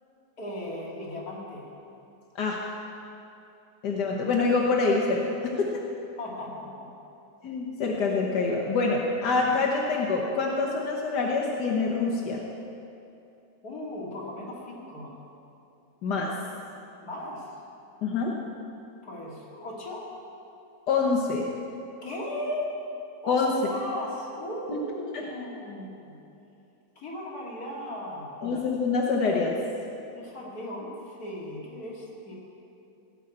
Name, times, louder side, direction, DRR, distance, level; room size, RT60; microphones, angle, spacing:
voice 1, 0.4-1.7 6.2-6.9 13.6-15.2 17.0-17.6 19.0-20.1 22.0-22.8 23.2-26.2 27.0-28.5 30.2-32.4, left 1 dB, 65° left, -4 dB, 3.0 m, -37 dB
voice 2, 3.8-5.7 7.4-12.4 16.0-16.3 18.0-18.3 20.9-21.5 23.3-23.5 24.7-24.8 25.1-25.2 28.4-29.6, left 4 dB, 90° left, -1 dB, 1.7 m, -26 dB
17.5 x 5.9 x 8.5 m, 2.7 s
omnidirectional pair, 1.7 m